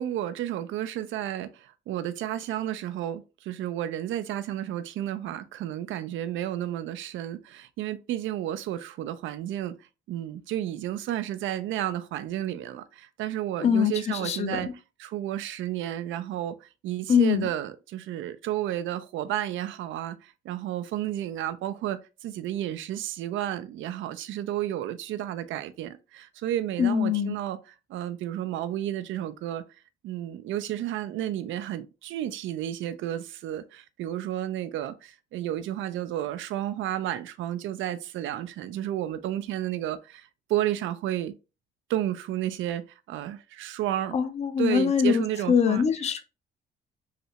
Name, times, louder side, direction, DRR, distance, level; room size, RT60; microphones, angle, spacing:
voice 1, 0.0-9.8 10.1-14.7 15.0-29.6 30.0-41.3 41.9-44.2 44.6-45.8, right 12 dB, 80° right, 0.4 m, -32 dB
voice 2, 13.6-14.6 17.1-17.5 26.8-27.3 44.1-46.2, left 7 dB, 35° left, 0.5 m, -23 dB
3.2 x 2.7 x 2.8 m
cardioid pair, 90°, 20 cm